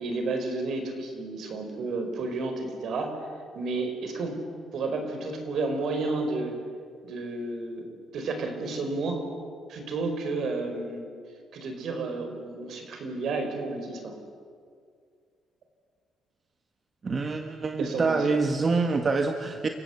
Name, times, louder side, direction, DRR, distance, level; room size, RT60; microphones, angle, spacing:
voice 1, 0.0-3.1 3.5-4.4 4.7-6.6 7.0-7.8 8.1-9.2 9.7-11.1 11.5-14.1 17.8-18.2, right 3 dB, 60° right, 5 dB, 4.8 m, -31 dB
voice 2, 17.0-19.7, right 4 dB, 30° right, 5 dB, 1.4 m, -26 dB
29.5 x 16.0 x 8.3 m, 2.2 s
cardioid pair, 125°, 0 cm